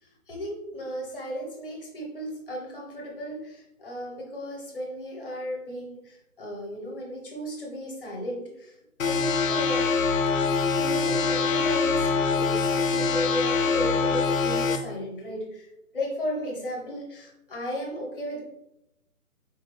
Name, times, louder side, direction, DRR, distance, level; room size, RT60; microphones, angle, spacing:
voice 1, 0.0-8.7 9.0-9.9 10.7-15.7 15.9-18.4, equal, 35° left, -1 dB, 0.9 m, -35 dB
sound 1, 9.0-14.8, left 4 dB, 60° left, 0.5 m, -24 dB
4.2 x 2.2 x 2.9 m, 0.84 s
figure-of-eight pair, 165°, 45 cm